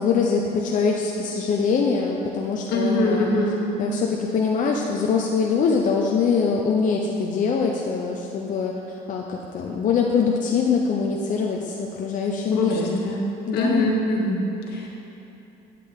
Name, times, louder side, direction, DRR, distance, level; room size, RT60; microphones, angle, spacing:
voice 1, 0.0-3.3 3.8-8.7 9.1-13.0 13.5-13.9, left 5 dB, 50° left, -1 dB, 0.7 m, -23 dB
voice 2, 2.7-3.6 12.5-13.2 13.5-14.9, left 1 dB, 80° left, -2 dB, 1.7 m, -23 dB
9.7 x 8.4 x 3.6 m, 2.9 s
cardioid pair, 110°, 17 cm